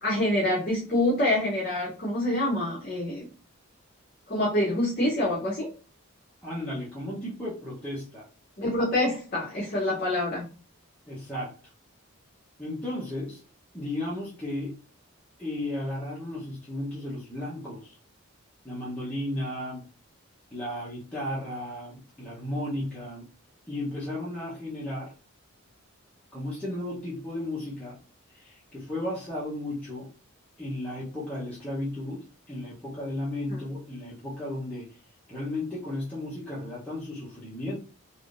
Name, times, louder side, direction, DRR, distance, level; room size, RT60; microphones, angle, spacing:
voice 1, 0.0-3.2 4.3-5.7 8.6-10.4 33.5-33.6, left 1 dB, 40° left, -5 dB, 0.9 m, -26 dB
voice 2, 6.4-8.3 11.1-11.6 12.6-13.4 13.7-14.8 15.4-18.0 18.6-19.8 20.5-23.2 23.7-25.1 26.3-28.0 28.3-30.1 30.6-35.0 35.3-37.8, left 1 dB, 5° left, -9 dB, 0.8 m, -34 dB
3.5 x 2.6 x 2.5 m, 0.36 s
head